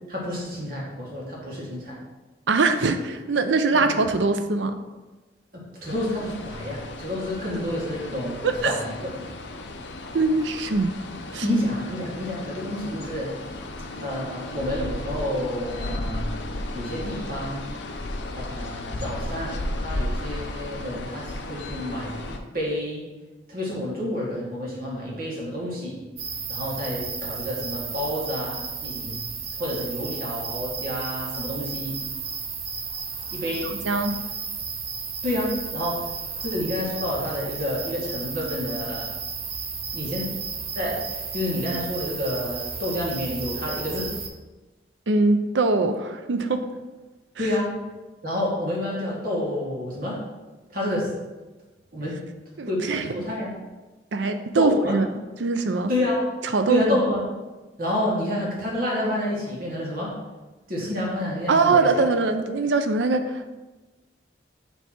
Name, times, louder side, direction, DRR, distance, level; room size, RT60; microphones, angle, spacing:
voice 1, 0.1-2.0 3.7-4.0 5.5-9.3 11.4-13.3 14.0-16.3 16.7-17.7 18.3-23.0 23.5-26.0 26.5-29.2 29.6-32.0 33.3-33.8 35.2-36.1 36.4-39.2 39.9-40.3 40.7-44.1 47.4-47.7 48.2-50.2 50.7-51.1 51.9-52.2 52.7-53.6 54.6-55.0 55.9-56.3 56.7-57.2 57.8-60.1 60.7-62.0, left 1 dB, 50° right, -4 dB, 1.9 m, -29 dB
voice 2, 2.5-4.8 8.4-8.8 10.1-10.9 11.3-11.4 33.7-34.1 45.1-46.6 52.6-53.1 54.1-55.0 55.4-55.9 56.5-57.0 61.5-63.5, right 3 dB, 80° right, 8 dB, 0.5 m, -22 dB
sound 1, 5.9-22.4, left 1 dB, 70° left, 0.6 m, -34 dB
sound 2, 26.2-44.3, right 5 dB, 30° right, 0.6 m, -33 dB
7.2 x 3.4 x 4.4 m, 1.2 s
head